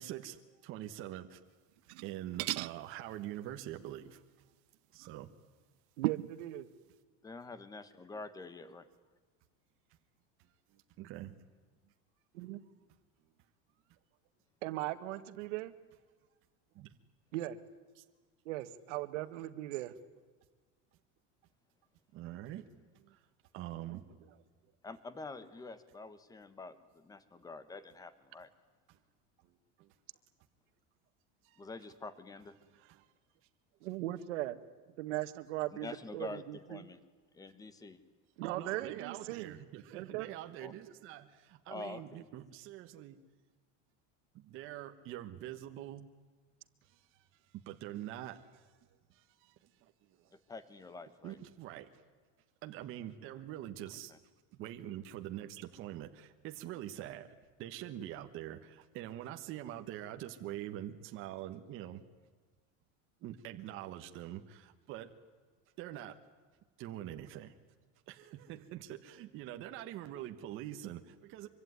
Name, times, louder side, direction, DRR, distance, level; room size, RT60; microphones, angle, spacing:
voice 1, 0.0-1.4 2.0-4.2 4.9-5.3 11.0-11.3 16.7-16.9 18.0-18.1 22.1-23.2 23.5-24.4 28.9-29.0 29.4-29.9 31.4-31.6 32.7-33.1 38.4-43.2 44.3-46.1 46.8-47.2 47.5-48.7 49.1-50.3 51.2-51.9 52.6-54.1 54.5-62.0 63.2-65.1 65.8-66.2 66.8-67.5 68.1-71.5, right 12 dB, 35° right, 6 dB, 1.3 m, -45 dB
sound 1, 1.8-2.1 2.4-2.8 5.0-5.1 6.0-6.4, right 22 dB, 65° right, 0.8 m, -36 dB
voice 2, 6.0-6.7 12.3-12.6 14.6-15.7 17.3-17.6 18.5-19.9 33.8-34.6 35.0-36.9 38.4-39.6 39.9-40.3, right 15 dB, 90° right, 12 dB, 1.8 m, -38 dB
voice 3, 7.2-8.9 24.8-28.5 31.6-32.5 35.8-37.0 37.3-38.0 40.6-40.7 41.7-42.3 50.5-51.4 54.1-54.2 69.8-69.9, left 3 dB, 10° left, 14 dB, 1.3 m, -47 dB
25.0 x 24.0 x 9.7 m, 1.4 s
cardioid pair, 175°, 35 cm